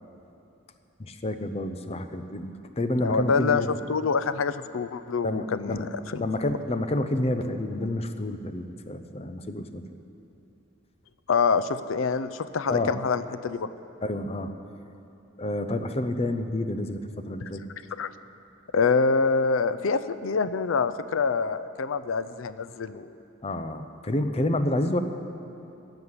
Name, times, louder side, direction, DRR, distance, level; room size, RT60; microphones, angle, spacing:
voice 1, 1.0-3.7 5.2-5.9 6.2-9.8 12.7-12.9 14.0-14.5 15.4-17.7 23.4-25.0, left 1 dB, 30° left, 8 dB, 0.7 m, -29 dB
voice 2, 3.0-3.6 3.9-6.3 11.3-13.7 18.0-18.1 18.7-23.1, left 5 dB, 80° left, 14 dB, 0.5 m, -26 dB
15.5 x 7.0 x 9.6 m, 2.8 s
head